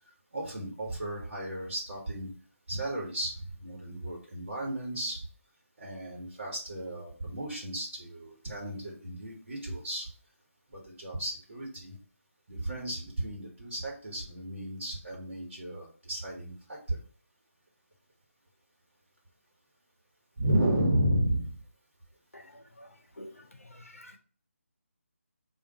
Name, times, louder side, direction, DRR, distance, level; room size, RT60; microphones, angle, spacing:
voice 1, 0.3-2.3 2.7-5.2 5.8-10.1 10.7-12.0 12.5-17.0 20.4-21.5, right 1 dB, 45° right, 1.2 m, -33 dB
voice 2, 22.3-24.2, left 1 dB, 80° left, 0.7 m, -50 dB
4.9 x 2.5 x 2.9 m
figure-of-eight pair, 155°, 8 cm